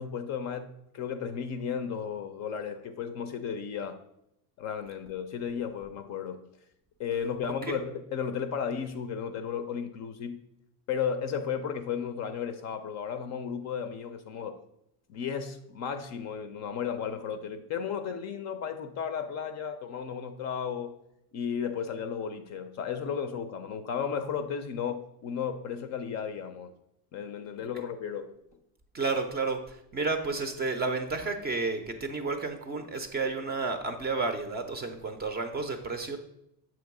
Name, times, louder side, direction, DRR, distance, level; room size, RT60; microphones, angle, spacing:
voice 1, 0.0-4.0 4.6-6.5 7.0-10.4 10.9-14.6 15.1-21.0 21.3-26.7 27.1-28.3, left 7 dB, 35° left, 9 dB, 0.5 m, -34 dB
voice 2, 28.9-36.2, right 3 dB, 20° right, 6 dB, 0.5 m, -31 dB
7.5 x 3.0 x 5.9 m, 0.79 s
supercardioid pair, 125°, 46 cm